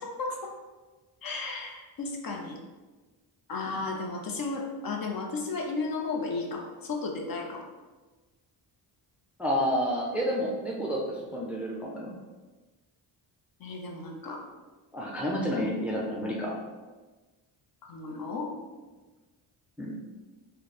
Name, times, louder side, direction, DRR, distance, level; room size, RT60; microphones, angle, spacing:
voice 1, 0.0-0.5 1.2-2.6 3.5-7.6 13.6-14.4 17.8-18.5, left 3 dB, 50° left, 1 dB, 0.7 m, -34 dB
voice 2, 9.4-12.1 14.9-16.6 19.8-20.0, equal, 5° right, -3 dB, 0.4 m, -30 dB
3.1 x 2.2 x 4.1 m, 1.3 s
cardioid pair, 95°, 47 cm